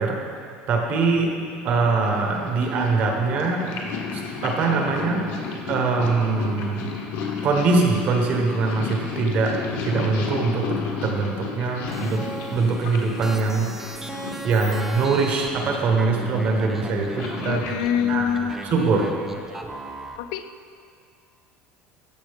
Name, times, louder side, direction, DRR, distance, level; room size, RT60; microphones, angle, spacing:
voice 1, 0.0-1.3 1.6-3.7 4.1-5.2 5.7-6.9 7.4-9.5 9.8-13.7 14.4-17.6 18.1-18.3 18.6-19.1, right 4 dB, 40° right, 2 dB, 1.1 m, -23 dB
Purr, 1.5-19.2, left 5 dB, 65° left, 1.2 m, -33 dB
sound 1, 11.9-20.2, right 2 dB, 10° right, 0.4 m, -37 dB
voice 2, 17.4-18.6 19.7-19.8 20.2-20.5, left 9 dB, 80° left, 10 dB, 0.4 m, -25 dB
14.0 x 6.0 x 3.5 m, 2.3 s
cardioid pair, 170°, 4 cm